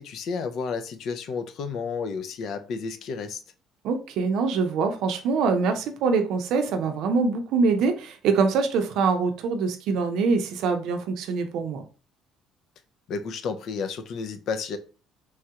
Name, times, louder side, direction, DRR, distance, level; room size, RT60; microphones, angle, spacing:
voice 1, 0.0-3.4 13.1-14.8, left 5 dB, 55° left, 0.4 m, -31 dB
voice 2, 3.8-11.8, right 4 dB, 70° right, 0.5 m, -24 dB
3.1 x 2.3 x 2.8 m
cardioid pair, 140°, 0 cm